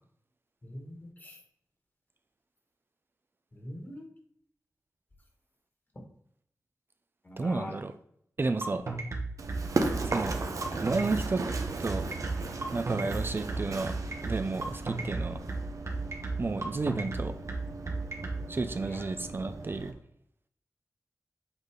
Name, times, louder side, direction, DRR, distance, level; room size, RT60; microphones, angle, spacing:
voice 1, 0.6-1.4 3.5-4.0 7.2-7.7 18.8-19.1, left 1 dB, 35° left, 1 dB, 1.8 m, -43 dB
voice 2, 7.4-7.9 8.4-8.8 10.0-10.4 10.8-11.5 11.8-12.0 12.7-13.9 14.2-15.4 16.4-17.3 18.5-20.0, right 3 dB, 40° right, 9 dB, 0.4 m, -31 dB
sound 1, 8.6-18.4, right 3 dB, 60° right, 1.2 m, -34 dB
Run, 9.4-19.9, right 3 dB, 85° right, 0.8 m, -36 dB
7.9 x 3.9 x 3.7 m, 0.68 s
wide cardioid pair, 105°, 6 cm